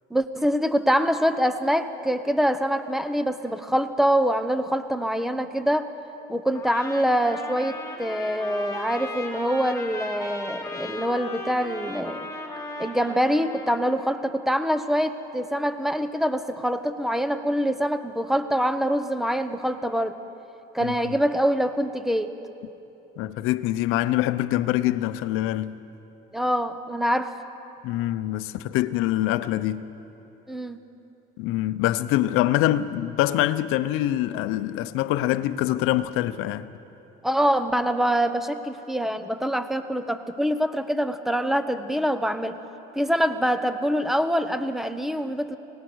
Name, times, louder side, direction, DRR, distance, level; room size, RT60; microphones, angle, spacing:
voice 1, 0.1-5.9 6.3-12.3 12.8-20.2 20.7-22.3 26.3-27.3 30.5-30.8 37.2-42.6 42.9-45.6, equal, ahead, 1.1 m, -25 dB
Trumpet, 6.5-13.9, left 2 dB, 15° left, 3.9 m, -37 dB
voice 2, 23.2-25.8 27.8-29.9 31.4-36.7, left 14 dB, 80° left, 0.8 m, -24 dB
24.5 x 19.0 x 6.4 m
cardioid pair, 100°, 21 cm